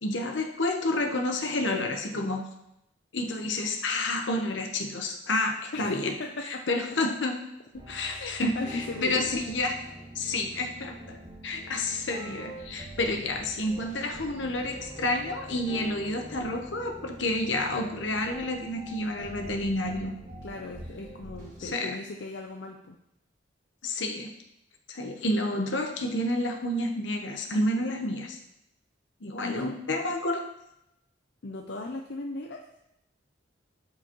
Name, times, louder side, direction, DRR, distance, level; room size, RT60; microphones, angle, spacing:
voice 1, 0.0-2.4 3.1-6.1 6.5-7.4 7.7-9.7 10.1-11.2 11.4-20.2 21.6-22.0 23.8-24.3 24.9-28.4 29.2-30.4, left 2 dB, 85° left, 3 dB, 1.0 m, -29 dB
voice 2, 5.7-6.6 8.1-9.2 20.4-23.0 29.4-29.6 31.4-32.6, left 2 dB, 70° left, 2 dB, 0.5 m, -37 dB
sound 1, 7.7-21.7, right 1 dB, 40° right, 1.8 m, -45 dB
12.0 x 4.8 x 3.1 m, 0.84 s
head